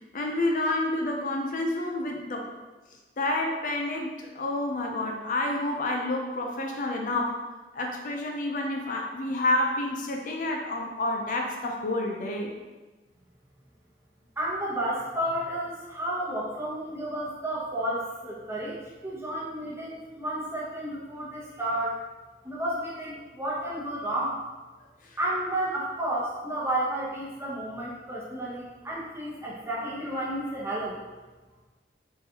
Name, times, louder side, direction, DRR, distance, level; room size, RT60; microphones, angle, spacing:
voice 1, 0.1-2.5 3.2-7.4 7.7-12.5 25.0-25.2, left 2 dB, 50° left, 1 dB, 0.4 m, -29 dB
voice 2, 14.4-22.0 22.4-24.4 25.2-31.0, right 1 dB, 15° right, -6 dB, 0.9 m, -31 dB
4.0 x 3.8 x 2.8 m, 1.2 s
head